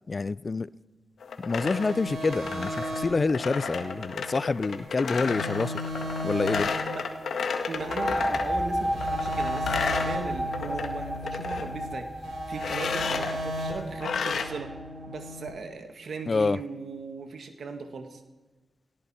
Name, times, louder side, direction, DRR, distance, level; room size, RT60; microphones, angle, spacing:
voice 1, 0.1-0.7 1.4-5.7 6.2-6.7 16.3-16.6, left 4 dB, 45° left, 0.4 m, -27 dB
sound 1, 1.2-8.5 9.0-10.9 11.1-11.7 12.6-13.3 14.0-14.4, left 5 dB, 75° left, 1.6 m, -32 dB
sound 2, 1.6-4.8 5.1-8.4 8.8-11.9 12.2-15.5, equal, 85° right, 3.7 m, -36 dB
sound 3, 7.7-15.2, equal, 10° right, 3.7 m, -32 dB
voice 2, 7.7-14.7 15.1-18.2, right 4 dB, 70° right, 1.9 m, -38 dB
18.0 x 17.5 x 4.5 m
cardioid pair, 45°, 0 cm